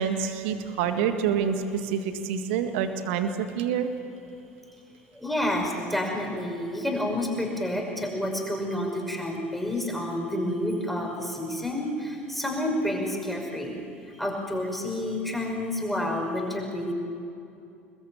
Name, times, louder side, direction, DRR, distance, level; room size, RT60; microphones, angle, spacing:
voice 1, 0.0-3.9, right 7 dB, 65° right, 8 dB, 1.9 m, -27 dB
voice 2, 5.2-13.8 14.2-16.9, left 1 dB, ahead, 0 dB, 5.9 m, -29 dB
28.0 x 21.0 x 8.9 m, 2.6 s
figure-of-eight pair, 70°, 7 cm